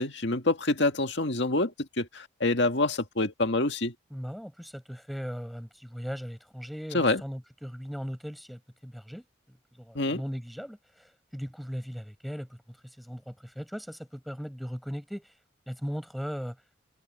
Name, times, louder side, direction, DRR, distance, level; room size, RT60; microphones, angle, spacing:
voice 1, 0.0-3.9 6.9-7.2 9.9-10.2, left 2 dB, 65° left, 2.0 m, -26 dB
voice 2, 4.1-15.3 15.7-16.6, equal, ahead, 6.4 m, -38 dB
head